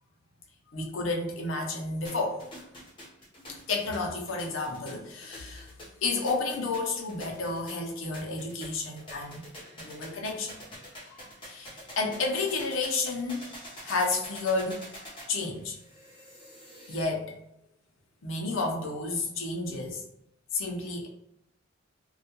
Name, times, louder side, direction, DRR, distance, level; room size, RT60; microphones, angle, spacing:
voice 1, 0.7-2.4 3.5-5.7 6.0-9.4 9.8-10.6 11.1-13.5 13.8-14.9 15.3-15.8 16.9-17.3 18.2-20.0 20.5-21.1, left 3 dB, 70° left, 0.6 m, -31 dB
sound 1, 2.0-17.0, equal, 25° left, 0.8 m, -47 dB
2.3 x 2.2 x 2.8 m
head